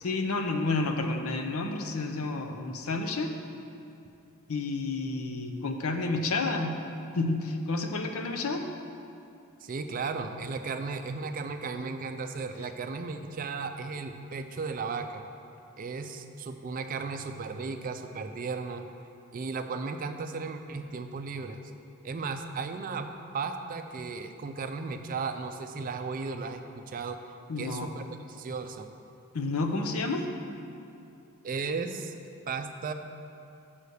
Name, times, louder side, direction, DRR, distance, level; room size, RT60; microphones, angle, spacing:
voice 1, 0.0-3.3 4.5-6.8 7.1-8.7 27.5-27.9 29.3-30.3, left 3 dB, 75° left, 5 dB, 0.7 m, -30 dB
voice 2, 9.6-15.2 15.8-18.8 19.3-21.6 22.0-27.2 27.6-28.9 31.4-32.2 32.5-32.9, right 4 dB, 40° right, 7 dB, 0.4 m, -35 dB
6.8 x 5.6 x 6.4 m, 2.6 s
head